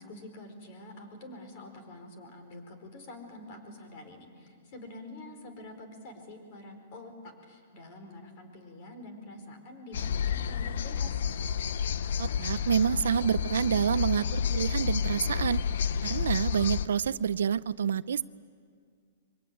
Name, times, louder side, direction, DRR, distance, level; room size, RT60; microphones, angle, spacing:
voice 1, 0.0-11.2, left 2 dB, 35° left, 6 dB, 4.5 m, -46 dB
sound 1, 9.9-16.9, left 7 dB, 65° left, 0.8 m, -30 dB
voice 2, 12.2-15.6 16.0-18.2, right 7 dB, 90° right, 16 dB, 0.6 m, -28 dB
25.5 x 24.0 x 9.3 m, 2.1 s
hypercardioid pair, 170°, 0 cm